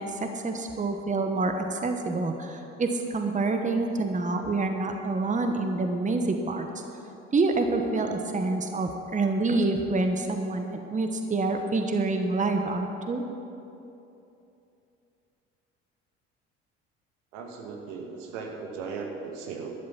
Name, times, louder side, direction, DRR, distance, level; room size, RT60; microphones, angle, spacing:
voice 1, 0.0-6.8 7.3-10.6 10.9-13.2, right 3 dB, 20° right, 5 dB, 1.2 m, -27 dB
voice 2, 17.3-19.7, right 5 dB, 70° right, 2 dB, 1.9 m, -37 dB
12.5 x 11.0 x 5.8 m, 2.9 s
hypercardioid pair, 60°, 33 cm